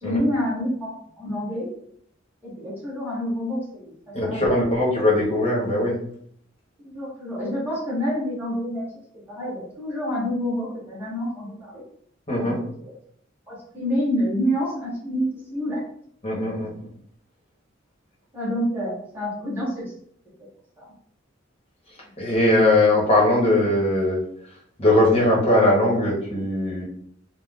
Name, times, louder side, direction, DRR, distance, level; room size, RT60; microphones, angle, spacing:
voice 1, 0.0-0.9 1.2-1.7 2.4-4.7 6.8-8.8 9.3-11.8 12.4-12.5 12.8-12.9 13.5-15.2 15.5-15.8 18.3-19.9 20.8-20.9, equal, 10° right, -9 dB, 1.4 m, -27 dB
voice 2, 4.1-6.0 12.3-12.6 16.2-16.9 22.2-24.2 24.8-26.8, left 1 dB, 30° left, -4 dB, 0.9 m, -20 dB
3.5 x 2.1 x 2.3 m, 0.65 s
head